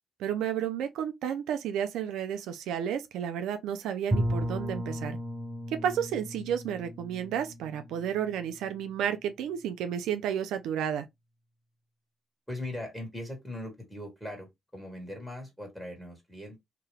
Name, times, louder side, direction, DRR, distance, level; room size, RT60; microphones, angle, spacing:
voice 1, 0.2-5.2 5.8-11.1, right 9 dB, 85° right, 0.4 m, -32 dB
Bowed string instrument, 4.1-8.9, equal, 20° right, 0.6 m, -35 dB
voice 2, 12.5-16.6, left 1 dB, 5° left, 1.5 m, -40 dB
2.9 x 2.3 x 3.2 m
cardioid pair, 90°, 0 cm